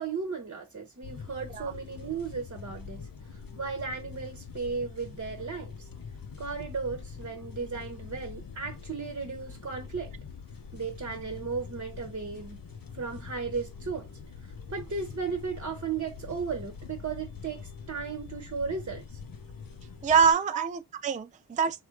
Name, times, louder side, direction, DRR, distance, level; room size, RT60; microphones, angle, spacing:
voice 1, 0.0-3.0 3.3-5.9 6.4-10.1 10.7-12.6 12.9-14.1 14.4-19.2 20.5-20.7, right 5 dB, 35° right, 1.0 m, -35 dB
sound 1, 1.0-20.3, left 5 dB, 55° left, 0.8 m, -44 dB
voice 2, 20.0-21.8, right 6 dB, 20° right, 0.3 m, -25 dB
3.7 x 2.8 x 4.5 m
wide cardioid pair, 105°, 41 cm